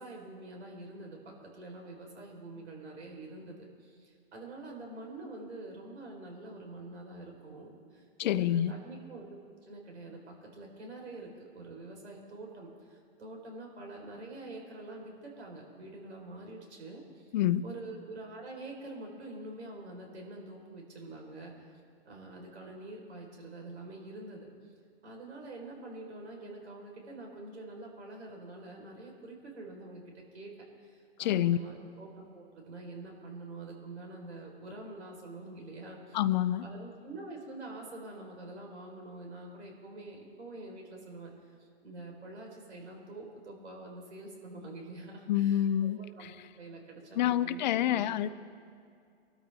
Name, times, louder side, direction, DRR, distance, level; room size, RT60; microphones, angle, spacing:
voice 1, 0.0-9.3 9.7-17.3 17.6-21.7 22.1-24.5 25.0-30.5 30.8-36.2 36.6-48.1, right 2 dB, 90° right, 0 dB, 4.4 m, -46 dB
voice 2, 8.2-8.7 17.3-17.6 31.2-31.6 36.1-36.7 45.3-46.0 47.2-48.3, left 12 dB, 45° left, 15 dB, 0.5 m, -27 dB
23.0 x 13.0 x 3.6 m, 2.3 s
hypercardioid pair, 140°, 32 cm